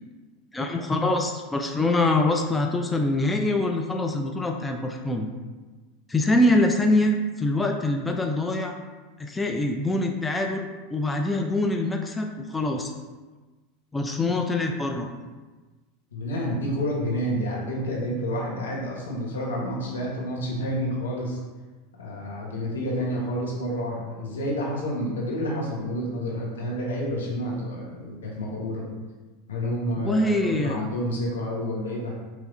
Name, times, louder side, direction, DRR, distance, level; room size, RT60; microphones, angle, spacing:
voice 1, 0.5-5.3 6.1-8.8 9.2-12.9 13.9-15.1 30.0-30.8, left 2 dB, 15° left, 3 dB, 0.4 m, -24 dB
voice 2, 16.1-21.4 22.0-28.8 29.5-32.2, equal, 85° left, -3 dB, 1.1 m, -29 dB
4.7 x 3.1 x 2.5 m, 1.3 s
hypercardioid pair, 95°, 0 cm